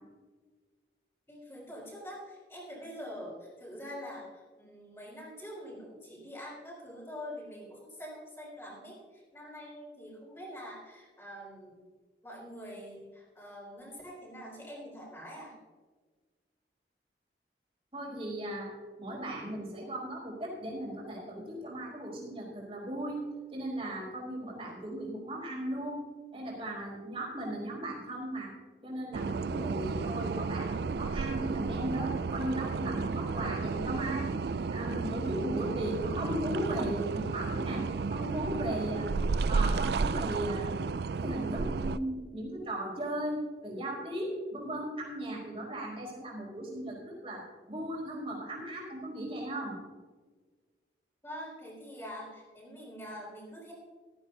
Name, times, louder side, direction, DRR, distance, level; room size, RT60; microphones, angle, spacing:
voice 1, 1.3-11.8 12.2-15.5 51.2-53.7, equal, 15° left, -4 dB, 4.1 m, -45 dB
voice 2, 17.9-18.7 19.0-23.2 23.5-26.0 26.3-28.5 28.8-34.3 34.7-37.8 38.1-39.1 39.5-40.8 41.2-49.7, right 1 dB, 35° right, -3 dB, 4.4 m, -37 dB
sound 1, 29.1-42.0, right 4 dB, 65° right, 0.4 m, -32 dB
15.0 x 14.0 x 2.8 m, 1.4 s
head